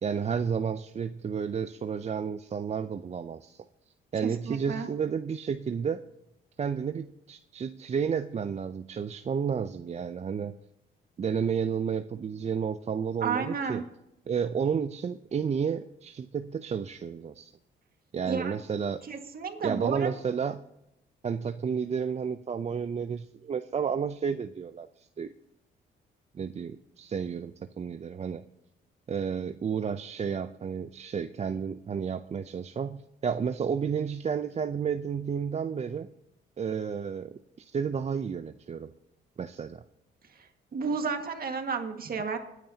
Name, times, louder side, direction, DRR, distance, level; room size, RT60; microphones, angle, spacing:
voice 1, 0.0-3.7 4.1-6.0 6.6-10.5 11.2-13.8 14.3-17.5 18.1-19.0 19.6-20.6 21.2-25.3 26.3-28.4 29.1-36.1 36.6-38.9 39.4-39.8, right 6 dB, 35° right, 10 dB, 0.5 m, -31 dB
voice 2, 4.2-4.9 13.2-13.8 18.2-18.5 19.0-20.2 40.7-42.4, right 5 dB, 50° right, 5 dB, 1.8 m, -32 dB
26.5 x 9.2 x 2.8 m, 0.87 s
cardioid pair, 90°, 20 cm